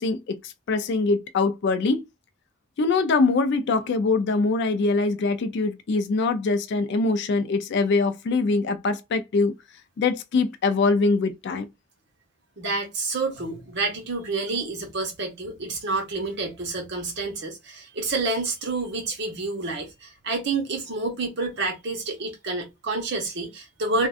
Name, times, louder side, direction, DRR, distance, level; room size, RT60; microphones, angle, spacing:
voice 1, 0.0-2.0 2.8-9.5 10.0-11.7, left 3 dB, 50° left, 0.3 m, -23 dB
voice 2, 12.6-24.1, right 3 dB, 50° right, 0.9 m, -29 dB
2.5 x 2.2 x 2.4 m
head